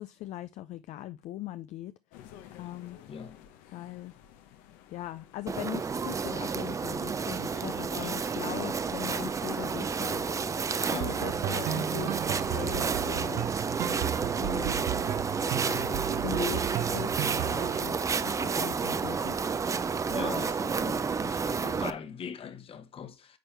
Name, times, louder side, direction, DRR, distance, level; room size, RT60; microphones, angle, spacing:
voice 1, 0.0-1.9 2.5-3.0 3.7-4.1 4.9-10.2 10.9-14.7 15.7-19.4 20.1-20.4, left 14 dB, 60° left, 0.4 m, -40 dB
sound 1, 2.1-12.6, left 10 dB, 80° left, 1.0 m, -51 dB
voice 2, 3.1-3.4 10.9-11.2 20.1-23.4, left 7 dB, 40° left, 1.1 m, -41 dB
sound 2, 5.5-21.9, right 5 dB, 25° right, 0.5 m, -30 dB
sound 3, 11.0-17.8, right 13 dB, 65° right, 0.6 m, -34 dB
9.2 x 4.4 x 3.3 m
supercardioid pair, 90°, 14 cm